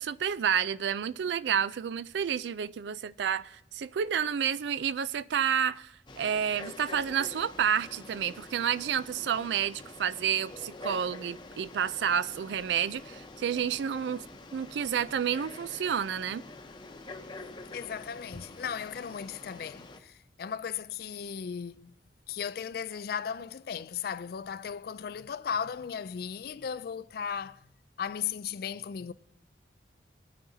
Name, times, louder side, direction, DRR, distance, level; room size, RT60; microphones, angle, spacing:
voice 1, 0.0-14.2 14.5-16.5, right 8 dB, 80° right, 0.4 m, -30 dB
Frog, 6.1-20.0, left 2 dB, 25° left, 0.8 m, -46 dB
voice 2, 17.7-21.9 22.3-27.7 28.0-29.1, left 7 dB, 60° left, 0.4 m, -36 dB
20.5 x 9.3 x 2.7 m
head